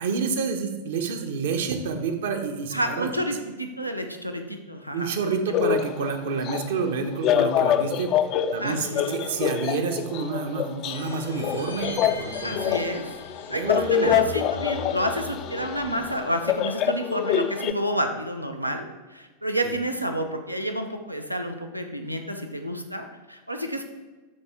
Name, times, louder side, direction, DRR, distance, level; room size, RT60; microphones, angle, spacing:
voice 1, 0.0-3.1 4.9-8.1 8.5-12.7 13.5-14.1 19.6-19.8, right 5 dB, 60° right, 6 dB, 0.9 m, -29 dB
voice 2, 2.7-5.4 8.6-9.2 12.4-13.1 13.5-18.9 19.1-23.8, equal, 90° right, 5 dB, 0.7 m, -29 dB
sound 1, 5.5-17.7, left 9 dB, 35° left, 0.4 m, -26 dB
sound 2, 10.9-16.6, left 2 dB, 80° left, 1.6 m, -40 dB
12.0 x 4.3 x 3.5 m, 1.2 s
figure-of-eight pair, 90°, 0 cm